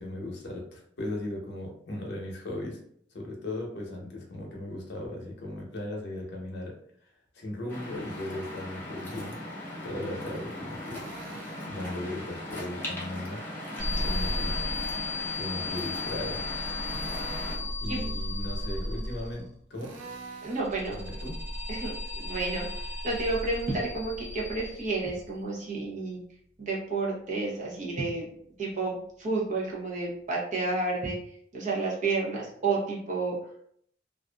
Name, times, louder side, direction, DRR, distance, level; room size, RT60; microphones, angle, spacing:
voice 1, 0.0-2.8 3.1-6.7 7.3-9.4 9.8-11.0 11.6-13.4 14.0-14.5 15.3-16.4 17.8-19.9 20.9-21.4, left 1 dB, 65° left, -1 dB, 0.7 m, -37 dB
Waves surf, 7.7-17.6, left 1 dB, 10° left, 0.6 m, -38 dB
Drill, 10.9-11.7 13.8-14.8 16.8-17.7 19.8-20.7, right 4 dB, 80° right, 0.4 m, -45 dB
sound 1, 13.8-19.6 20.4-25.4, left 2 dB, 5° right, 1.3 m, -34 dB
voice 2, 20.4-21.0 21.7-26.2 26.6-28.3 28.6-31.2 31.5-33.4, right 3 dB, 40° right, -3 dB, 0.8 m, -31 dB
2.5 x 2.5 x 2.2 m, 0.66 s
head